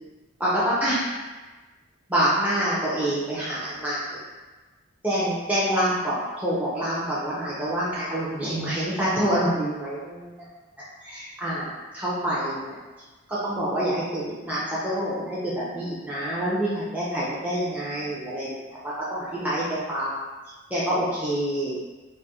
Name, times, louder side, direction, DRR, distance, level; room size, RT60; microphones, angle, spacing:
voice 1, 0.4-1.1 2.1-4.2 5.0-10.3 11.0-11.7 11.9-12.7 13.3-18.6 18.8-20.1 20.7-21.8, right 1 dB, 5° right, -9 dB, 0.5 m, -26 dB
2.6 x 2.4 x 4.1 m, 1.2 s
head